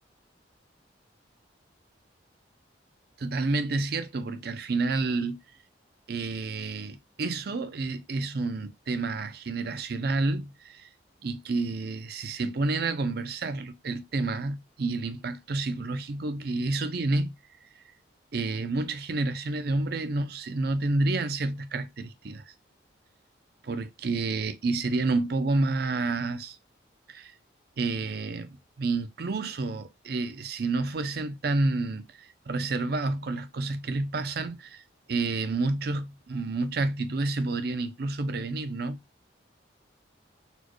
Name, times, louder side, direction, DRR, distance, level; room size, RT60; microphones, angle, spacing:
voice 1, 3.2-5.4 6.1-10.9 11.2-17.3 18.3-22.5 23.6-26.6 27.1-27.3 27.8-28.5 28.8-34.8 35.1-39.0, right 3 dB, 55° right, 0.5 m, -29 dB
4.2 x 2.3 x 3.0 m
head